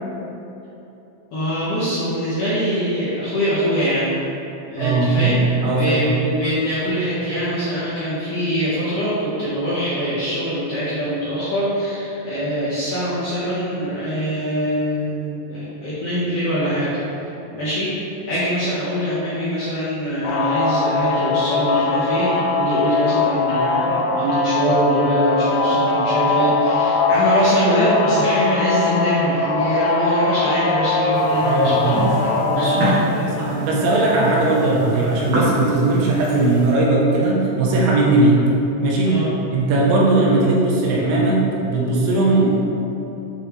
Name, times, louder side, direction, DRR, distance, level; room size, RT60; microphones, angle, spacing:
voice 1, 1.3-4.1 4.7-16.9 17.5-18.0 18.3-31.9 32.2-33.3 39.1-39.3, equal, 60° left, -12 dB, 2.3 m, -23 dB
voice 2, 4.8-6.0 31.4-32.0 32.5-32.7 33.4-38.4 38.8-39.2 39.5-42.6, right 2 dB, 85° right, -3 dB, 3.9 m, -18 dB
sound 1, 20.2-33.0, left 3 dB, 80° left, 3.4 m, -20 dB
sound 2, 31.1-36.7, equal, 55° right, 2.6 m, -27 dB
10.5 x 5.8 x 3.4 m, 3.0 s
omnidirectional pair, 5.8 m